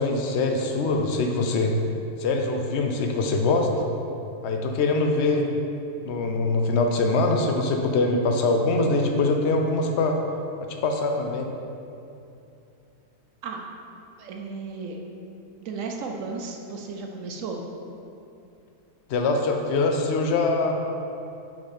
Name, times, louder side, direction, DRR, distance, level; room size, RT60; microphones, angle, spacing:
voice 1, 0.0-1.7 2.2-3.7 4.4-5.5 6.0-10.2 10.7-11.5 19.1-20.8, left 3 dB, 70° left, 3 dB, 0.6 m, -23 dB
voice 2, 14.2-15.0 15.6-17.6, right 4 dB, 65° right, 2 dB, 0.8 m, -34 dB
6.2 x 5.0 x 4.1 m, 2.7 s
omnidirectional pair, 1.7 m